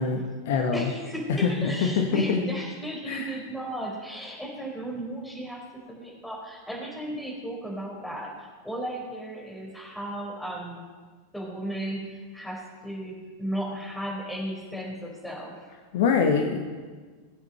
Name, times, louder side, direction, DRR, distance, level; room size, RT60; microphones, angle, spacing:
voice 1, 0.0-0.9 1.3-2.4 3.1-3.3 15.9-16.6, left 5 dB, 55° left, 5 dB, 1.2 m, -24 dB
voice 2, 0.7-5.6 5.9-10.8 11.3-15.7, right 1 dB, 5° left, -3 dB, 4.5 m, -35 dB
22.0 x 8.0 x 4.3 m, 1.5 s
figure-of-eight pair, 90°, 0 cm